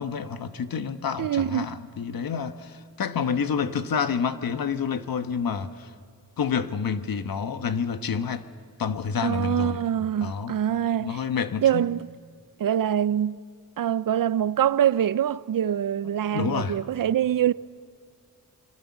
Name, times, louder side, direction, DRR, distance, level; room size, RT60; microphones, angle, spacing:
voice 1, 0.0-5.9 6.4-8.5 8.8-9.8 10.2-10.6 11.0-11.9 16.0-16.8, left 6 dB, 65° left, 1.3 m, -28 dB
voice 2, 1.2-1.7 9.2-11.2 11.6-12.1 12.6-13.4 13.8-17.5, right 10 dB, 60° right, 0.6 m, -24 dB
29.0 x 22.5 x 7.2 m
cardioid pair, 80°, 38 cm